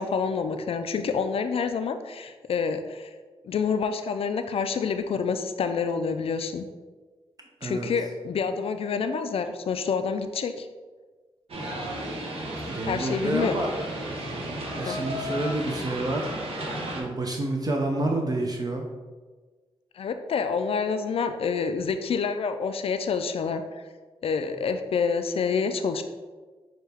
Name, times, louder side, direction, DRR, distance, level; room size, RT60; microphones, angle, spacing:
voice 1, 0.0-3.1 3.4-6.7 7.6-10.7 12.8-13.6 14.8-15.0 19.9-23.6 24.2-26.0, left 5 dB, 65° left, 8 dB, 0.4 m, -27 dB
sound 1, 11.5-17.0, right 1 dB, 65° right, 0.9 m, -33 dB
voice 2, 12.7-13.7 14.7-16.3 16.9-18.8, right 2 dB, 40° right, 1 dB, 0.5 m, -28 dB
6.3 x 2.3 x 3.4 m, 1.4 s
cardioid pair, 45°, 11 cm